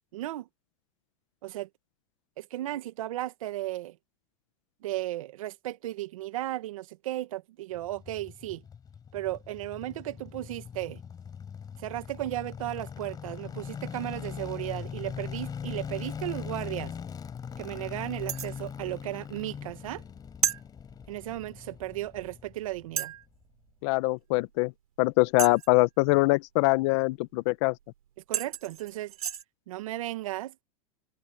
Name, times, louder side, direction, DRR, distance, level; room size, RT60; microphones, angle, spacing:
voice 1, 0.1-0.5 1.4-1.7 2.4-3.9 4.8-8.6 9.1-11.0 11.8-16.9 17.6-20.0 21.1-23.1 28.3-29.1 29.7-30.6, right 15 dB, 70° right, 2.2 m, -35 dB
sound 1, 7.8-23.0 23.2-23.3, left 7 dB, 20° left, 5.2 m, -41 dB
sound 2, 18.3-18.6 20.4-20.6 22.0-22.1 23.0-23.2 25.4-25.8 27.8-27.9 28.3-29.4, right 8 dB, 85° right, 4.5 m, -31 dB
voice 2, 23.8-24.7 25.0-27.8, left 24 dB, 55° left, 1.2 m, -23 dB
hypercardioid pair, 120°, 18 cm